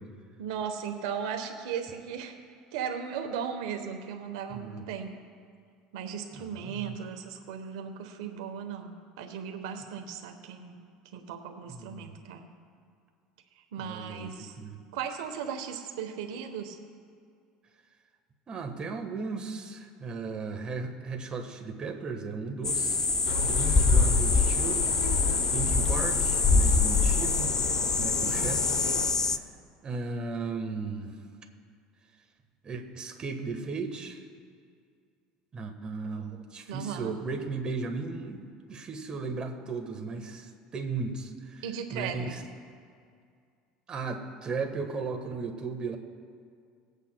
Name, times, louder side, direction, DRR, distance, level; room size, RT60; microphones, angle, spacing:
voice 1, 0.4-2.4 2.7-5.1 5.9-10.8 11.1-12.5 13.7-14.6 14.9-16.8 28.2-28.5 36.7-37.2 41.6-42.4, right 7 dB, 80° right, 5 dB, 1.0 m, -37 dB
voice 2, 4.5-4.8 6.3-6.9 11.7-12.2 13.8-14.3 14.6-14.8 18.5-23.1 23.4-24.8 25.2-27.6 28.0-28.9 29.8-31.2 32.6-34.2 35.5-41.6 41.9-42.4 43.9-46.0, right 4 dB, 30° right, 4 dB, 1.3 m, -36 dB
sound 1, 22.6-29.4, left 4 dB, 20° left, 0.5 m, -24 dB
sound 2, 23.2-29.1, left 5 dB, 75° left, 0.8 m, -36 dB
20.0 x 8.2 x 2.2 m, 2.2 s
supercardioid pair, 95°, 3 cm